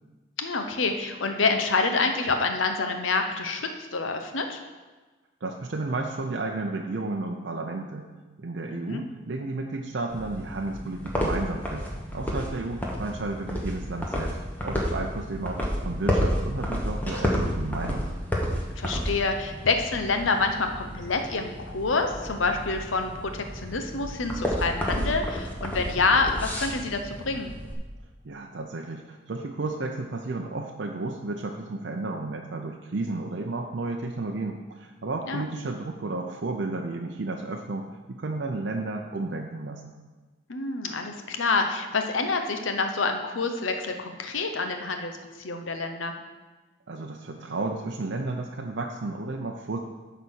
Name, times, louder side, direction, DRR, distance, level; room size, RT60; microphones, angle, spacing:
voice 1, 0.4-4.6 8.7-9.0 18.8-27.5 35.3-35.4 40.5-46.1, left 3 dB, 75° left, 5 dB, 0.8 m, -27 dB
voice 2, 5.4-8.1 8.4-11.9 12.1-14.4 14.6-18.1 28.2-39.9 46.9-49.8, right 2 dB, 60° right, 2 dB, 0.6 m, -32 dB
sound 1, 10.1-27.7, equal, 10° left, 1.1 m, -31 dB
9.7 x 4.1 x 6.3 m, 1.3 s
head